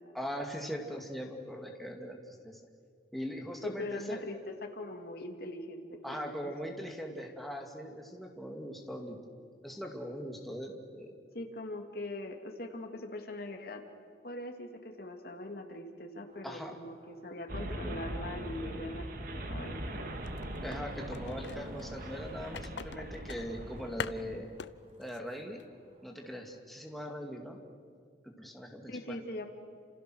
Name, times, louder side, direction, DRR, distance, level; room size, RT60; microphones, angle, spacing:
voice 1, 0.1-2.6 3.1-4.2 6.0-9.2 9.6-11.1 16.4-16.7 20.6-24.6 25.0-25.6 26.0-27.6 28.2-29.2, equal, ahead, 1 dB, 2.4 m, -40 dB
voice 2, 3.6-6.9 11.3-13.8 14.2-19.1 19.3-20.1 28.9-29.5, left 1 dB, 60° left, 4 dB, 2.7 m, -42 dB
sound 1, 16.3-26.6, right 1 dB, 35° right, 2.3 m, -58 dB
sound 2, 17.5-24.4, right 1 dB, 55° right, 2.1 m, -41 dB
sound 3, 20.2-21.9 22.5-24.7 25.0-25.2 25.6-25.7, left 6 dB, 85° left, 0.6 m, -43 dB
29.5 x 27.5 x 6.4 m, 2.1 s
head